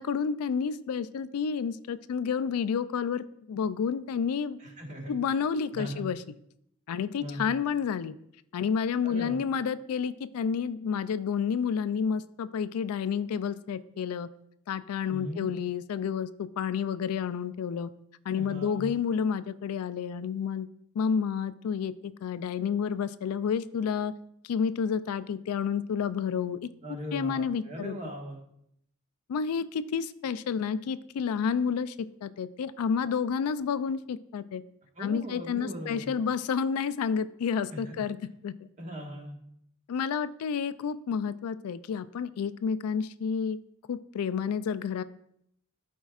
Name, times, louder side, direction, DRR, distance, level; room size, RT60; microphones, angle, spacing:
voice 1, 0.0-4.6 5.1-6.2 6.9-8.1 8.5-14.3 14.7-17.9 18.3-20.7 21.0-24.1 24.4-26.7 27.1-27.9 29.3-34.6 35.0-38.2 38.4-38.7 39.9-43.6 43.9-45.0, left 6 dB, 80° left, 14 dB, 0.3 m, -30 dB
voice 2, 4.6-5.1 5.7-6.1 7.2-7.6 9.0-9.4 15.1-15.5 18.3-18.8 26.8-28.4 34.9-36.0 37.7-38.0 38.8-39.4, equal, 35° right, 0 dB, 1.5 m, -39 dB
12.5 x 4.6 x 2.4 m, 0.74 s
head